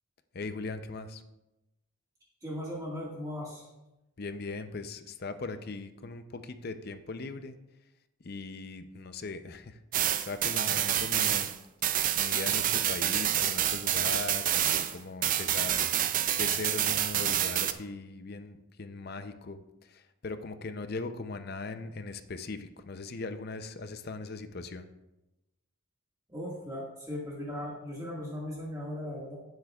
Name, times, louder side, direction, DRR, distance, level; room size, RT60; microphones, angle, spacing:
voice 1, 0.3-1.2 4.2-7.6 8.2-11.6 12.1-15.8 16.4-19.6 19.9-24.8, left 3 dB, 45° left, 10 dB, 0.5 m, -39 dB
voice 2, 2.4-3.6 26.3-29.4, left 1 dB, 15° right, -4 dB, 1.8 m, -38 dB
sound 1, 9.9-15.0 15.2-17.7, right 11 dB, 40° right, 0.4 m, -28 dB
16.5 x 7.8 x 2.4 m, 0.97 s
head